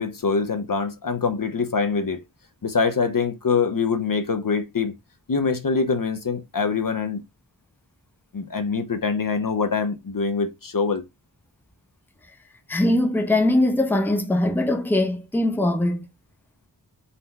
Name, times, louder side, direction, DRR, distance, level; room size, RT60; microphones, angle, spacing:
voice 1, 0.0-2.2 2.6-4.9 5.3-7.2 8.3-11.0, left 5 dB, 55° left, 0.7 m, -24 dB
voice 2, 12.7-16.0, left 1 dB, 5° left, 0.7 m, -21 dB
4.1 x 2.2 x 4.1 m
wide cardioid pair, 50°, 41 cm